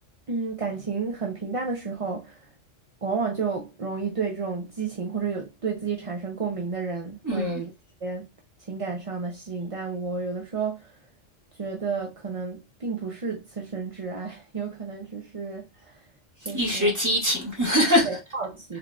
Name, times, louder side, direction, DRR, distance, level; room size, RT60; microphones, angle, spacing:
voice 1, 0.3-2.5 3.0-7.7 8.0-8.3 8.7-10.9 11.6-16.0 16.4-16.9 18.0-18.8, right 5 dB, 35° right, 0.6 m, -31 dB
voice 2, 7.2-7.6 16.4-18.1, equal, 15° right, 1.8 m, -23 dB
4.5 x 3.6 x 2.3 m
omnidirectional pair, 1.3 m